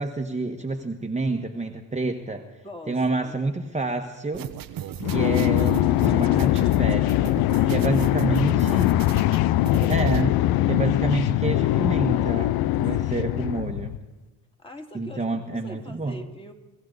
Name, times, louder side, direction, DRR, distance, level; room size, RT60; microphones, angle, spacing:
voice 1, 0.0-2.5 2.9-4.5 5.1-7.4 7.7-9.0 9.9-10.4 10.6-14.0 14.9-16.2, right 3 dB, 15° right, 3 dB, 1.5 m, -28 dB
voice 2, 2.6-3.4 7.5-7.9 9.5-10.0 13.0-13.4 14.6-16.5, left 1 dB, 15° left, 4 dB, 2.4 m, -43 dB
sound 1, 4.3-10.2, right 10 dB, 60° right, 1.0 m, -37 dB
sound 2, 5.0-14.0, left 15 dB, 70° left, 0.6 m, -22 dB
25.5 x 14.0 x 4.0 m, 1.1 s
supercardioid pair, 65°, 38 cm